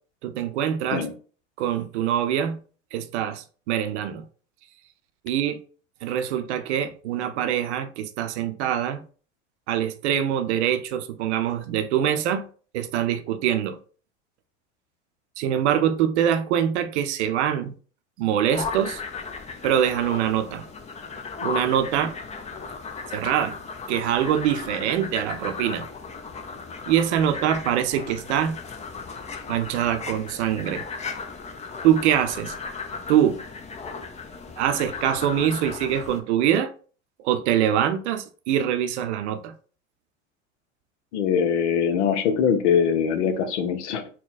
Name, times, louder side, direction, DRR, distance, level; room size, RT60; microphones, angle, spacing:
voice 1, 0.2-1.1 1.6-2.6 2.9-4.2 5.2-5.6 6.0-9.0 9.7-12.4 12.7-13.8 15.4-17.7 18.2-19.0 19.6-20.6 21.4-22.1 23.1-23.6 23.9-25.9 26.9-28.6 29.5-30.8 31.8-32.5 33.1-33.4 34.6-36.7 37.2-39.5, right 10 dB, 60° right, 0.7 m, -24 dB
sound 1, 18.5-36.2, left 5 dB, 20° left, 0.6 m, -36 dB
voice 2, 41.1-44.1, left 7 dB, 60° left, 0.8 m, -22 dB
3.9 x 2.2 x 4.0 m
figure-of-eight pair, 75°, 38 cm